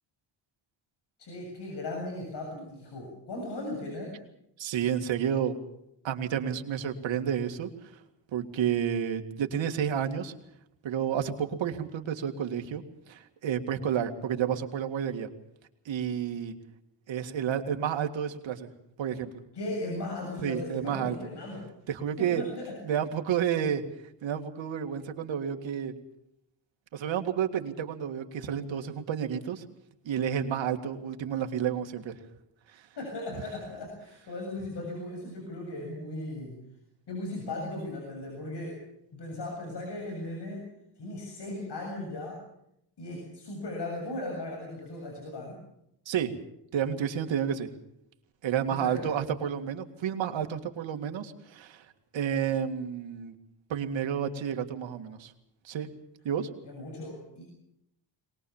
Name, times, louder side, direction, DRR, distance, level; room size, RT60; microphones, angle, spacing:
voice 1, 1.2-4.2 19.5-21.7 22.2-22.8 32.9-36.6 37.1-38.8 39.1-42.4 43.0-45.6 48.7-49.1 56.6-57.4, left 2 dB, 65° left, 1 dB, 7.6 m, -37 dB
voice 2, 4.6-5.5 6.0-8.0 8.3-10.3 10.8-15.3 15.9-16.5 17.1-18.7 19.0-19.3 20.4-21.2 21.9-22.4 22.8-23.8 24.2-25.9 26.9-29.6 30.0-32.1 32.7-32.8 46.1-46.3 46.7-47.7 48.4-51.9 52.1-53.3 53.7-55.3 55.6-55.9 56.2-56.5, right 8 dB, 80° right, 5 dB, 2.2 m, -30 dB
23.0 x 20.0 x 7.3 m, 0.78 s
cardioid pair, 90°, 45 cm